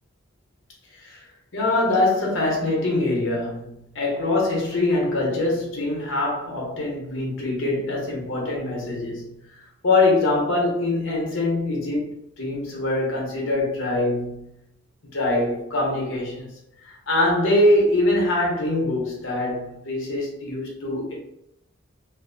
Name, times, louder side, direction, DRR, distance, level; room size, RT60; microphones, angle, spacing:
voice 1, 1.5-14.5 15.1-16.5 16.8-21.2, left 2 dB, 65° left, 0.8 m, -23 dB
2.5 x 2.0 x 2.6 m
head